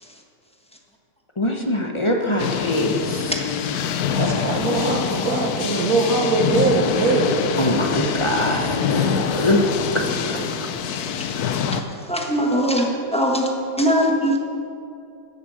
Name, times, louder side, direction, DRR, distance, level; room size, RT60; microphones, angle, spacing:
voice 1, 1.4-3.4 7.6-10.7, left 1 dB, 25° left, 2 dB, 0.8 m, -23 dB
sound 1, 2.4-11.8, left 7 dB, 70° left, 1.2 m, -25 dB
voice 2, 4.2-7.3, right 3 dB, 60° right, 1 dB, 1.7 m, -21 dB
voice 3, 12.1-13.5 13.8-14.4, equal, 5° left, 0 dB, 1.2 m, -20 dB
16.0 x 6.9 x 6.4 m, 2.5 s
omnidirectional pair, 1.8 m